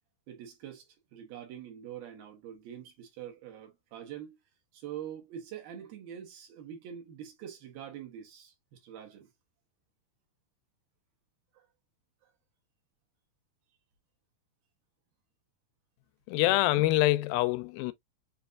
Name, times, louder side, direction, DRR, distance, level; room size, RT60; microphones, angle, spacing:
voice 1, 0.3-0.9 1.1-4.4 4.7-9.3 11.5-11.6, right 9 dB, 75° right, 3.1 m, -44 dB
voice 2, 16.3-17.9, left 17 dB, 80° left, 2.1 m, -25 dB
7.2 x 2.6 x 2.2 m
omnidirectional pair, 4.3 m